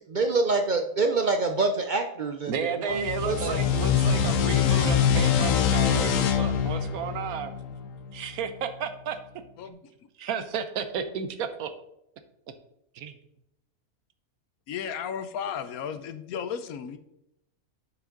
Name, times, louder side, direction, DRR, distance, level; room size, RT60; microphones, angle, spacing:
voice 1, 0.1-3.5 3.8-4.1, right 3 dB, 60° right, 6 dB, 0.5 m, -26 dB
voice 2, 2.5-7.5 8.1-9.2 9.6-9.8 10.2-11.7 12.9-13.1, right 7 dB, 90° right, 10 dB, 1.3 m, -33 dB
sound 1, 2.9-8.2, left 8 dB, 70° left, 1.1 m, -24 dB
voice 3, 14.7-17.0, left 7 dB, 85° left, 11 dB, 1.2 m, -34 dB
7.3 x 6.8 x 3.8 m, 0.82 s
omnidirectional pair, 1.5 m